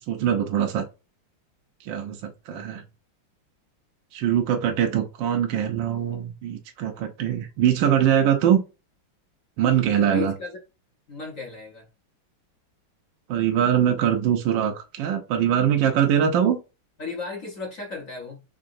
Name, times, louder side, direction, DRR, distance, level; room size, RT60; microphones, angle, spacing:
voice 1, 0.1-0.9 1.8-2.8 4.1-8.6 9.6-10.3 13.3-16.6, right 9 dB, 75° right, 1.2 m, -22 dB
voice 2, 10.1-10.5 11.1-11.9 17.0-18.4, left 4 dB, 50° left, 1.1 m, -35 dB
3.8 x 3.5 x 2.5 m
omnidirectional pair, 2.2 m